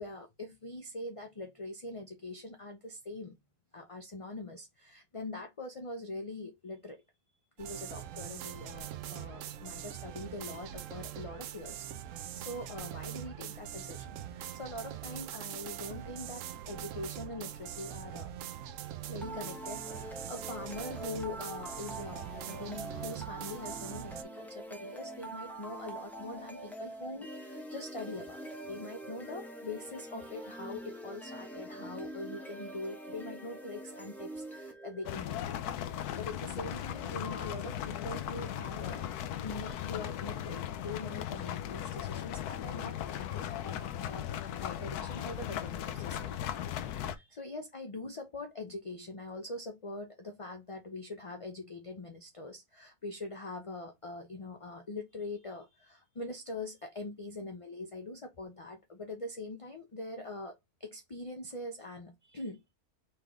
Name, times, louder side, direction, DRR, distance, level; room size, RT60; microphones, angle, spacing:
voice 1, 0.0-3.3 3.7-7.0 7.6-11.8 12.4-18.3 19.1-35.6 35.9-39.1 39.4-46.3 46.8-60.5 60.8-62.6, left 2 dB, 35° left, 0.5 m, -43 dB
sound 1, 7.6-24.2, right 10 dB, 70° right, 0.8 m, -43 dB
sound 2, 19.2-35.2, right 1 dB, ahead, 0.9 m, -44 dB
sound 3, 35.1-47.2, left 10 dB, 85° left, 1.1 m, -37 dB
4.4 x 3.3 x 3.5 m
omnidirectional pair, 1.6 m